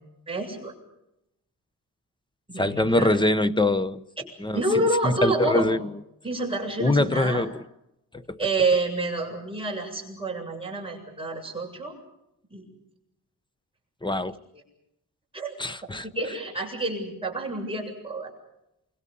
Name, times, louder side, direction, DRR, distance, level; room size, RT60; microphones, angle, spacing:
voice 1, 0.3-0.7 2.5-3.2 4.5-5.7 6.2-7.4 8.4-11.9 12.5-12.6 15.3-15.5 16.1-18.3, right 2 dB, 15° right, 7.7 m, -28 dB
voice 2, 2.6-4.0 4.4-4.6 5.0-5.8 6.8-7.6 8.1-8.4 14.0-14.4 15.6-16.1, left 2 dB, 15° left, 0.9 m, -23 dB
28.5 x 26.0 x 5.5 m
wide cardioid pair, 160°, 35 cm